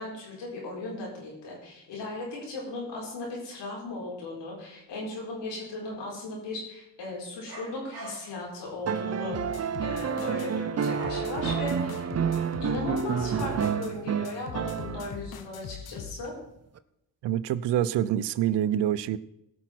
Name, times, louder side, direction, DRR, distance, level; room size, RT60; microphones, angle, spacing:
voice 1, 0.0-12.1 12.6-16.3, left 2 dB, 80° left, -3 dB, 4.5 m, -37 dB
sound 1, 7.5-8.5 10.9-12.0, right 1 dB, 60° right, 3.1 m, -43 dB
sound 2, 8.8-15.3 16.8-16.9, right 7 dB, 35° right, 0.6 m, -29 dB
sound 3, 9.3-10.5 10.8-13.9 14.2-16.2, left 7 dB, 60° left, 1.3 m, -41 dB
voice 2, 17.2-19.2, right 11 dB, 75° right, 18 dB, 0.7 m, -26 dB
17.0 x 6.3 x 4.5 m, 0.85 s
supercardioid pair, 55°, 42 cm